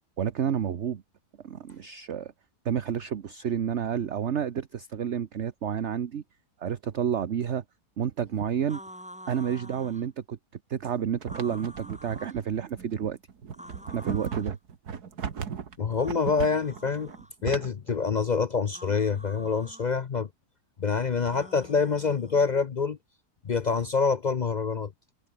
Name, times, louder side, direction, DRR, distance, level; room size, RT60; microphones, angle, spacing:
voice 1, 0.2-1.0 1.4-2.3 2.6-6.2 6.6-7.6 8.0-8.8 9.3-10.4 10.7-13.2 13.9-14.6, right 8 dB, 50° right, 1.2 m, -30 dB
sound 1, 8.7-10.1 11.2-12.4 13.5-14.5 15.9-17.3 18.7-19.9 21.3-22.6, equal, 5° right, 7.0 m, -47 dB
sound 2, 11.2-18.0, right 7 dB, 75° right, 2.2 m, -36 dB
voice 2, 15.8-17.1 17.4-20.3 20.8-23.0 23.4-24.9, left 5 dB, 65° left, 0.4 m, -26 dB
omnidirectional pair, 1.7 m